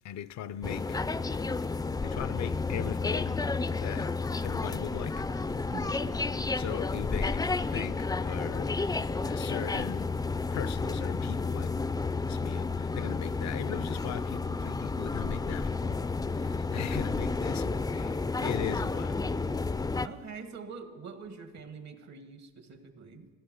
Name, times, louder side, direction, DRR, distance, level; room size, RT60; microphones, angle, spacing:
voice 1, 0.0-1.0 2.0-4.2 4.4-5.3 6.5-8.8 9.2-10.1 10.5-11.7 12.3-16.0 16.3-19.3, left 11 dB, 65° left, 0.6 m, -39 dB
sound 1, 0.6-20.1, left 3 dB, 10° left, 0.4 m, -31 dB
voice 2, 5.7-6.2 20.0-23.3, right 5 dB, 65° right, 1.8 m, -45 dB
15.0 x 11.0 x 7.8 m
cardioid pair, 90°, 30 cm